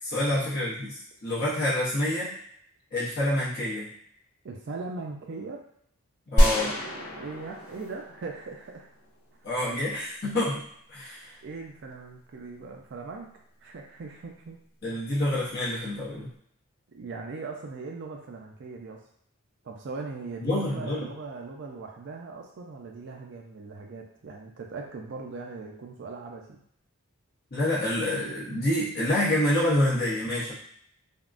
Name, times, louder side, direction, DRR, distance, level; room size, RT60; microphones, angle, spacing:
voice 1, 0.0-2.3 2.9-3.9 6.3-6.7 9.4-11.4 14.8-16.3 20.4-21.1 27.5-30.5, left 1 dB, 45° left, -8 dB, 0.8 m, -27 dB
voice 2, 4.4-5.6 6.6-8.9 11.4-13.3 13.6-14.6 16.9-19.0 19.6-26.6, right 4 dB, 55° right, 1 dB, 0.4 m, -40 dB
sound 1, 6.4-9.3, equal, 80° left, 1.0 m, -26 dB
3.5 x 2.1 x 2.4 m, 0.69 s
head